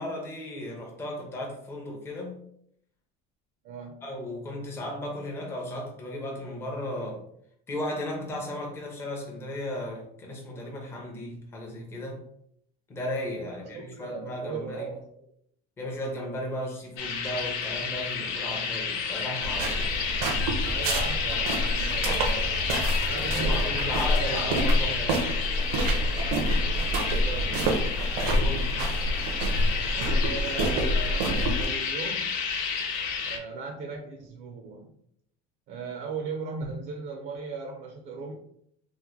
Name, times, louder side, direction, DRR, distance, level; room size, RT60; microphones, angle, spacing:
voice 1, 0.0-2.4 4.0-7.2 7.7-12.2 12.9-14.9 15.8-19.9 23.2-25.2 28.1-28.7, left 1 dB, 15° left, -1 dB, 0.5 m, -35 dB
voice 2, 3.6-4.0 13.6-15.3 20.7-22.6 23.1-24.4 26.2-27.7 29.9-32.4 33.2-34.9 35.7-38.3, right 4 dB, 45° right, 1 dB, 0.4 m, -38 dB
sound 1, 17.0-33.4, left 6 dB, 80° left, 0.7 m, -31 dB
sound 2, 19.4-31.7, equal, 85° right, 0.7 m, -27 dB
2.9 x 2.1 x 3.5 m, 0.69 s
cardioid pair, 165°, 19 cm